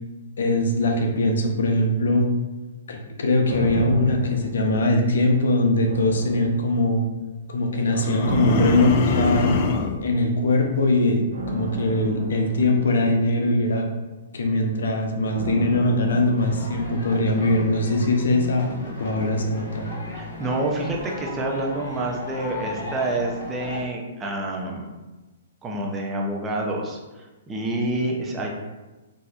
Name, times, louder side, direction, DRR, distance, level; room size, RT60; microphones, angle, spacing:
voice 1, 0.4-2.3 2.9-7.0 7.5-9.6 10.0-11.2 11.5-13.9 14.3-18.7 19.0-19.9, left 1 dB, 80° left, 2 dB, 0.6 m, -21 dB
sound 1, 3.5-5.4 5.9-7.1 8.2-9.9 11.3-13.7 15.3-17.5 17.8-17.9, right 3 dB, 80° right, 0.8 m, -33 dB
sound 2, 7.9-10.0, left 5 dB, 45° left, 0.3 m, -24 dB
sound 3, 16.4-23.8, left 2 dB, 60° left, 1.0 m, -36 dB
voice 2, 20.2-24.9 25.6-28.5, right 2 dB, 15° right, -1 dB, 0.5 m, -28 dB
4.1 x 2.7 x 2.3 m, 1.2 s
hypercardioid pair, 145°, 0 cm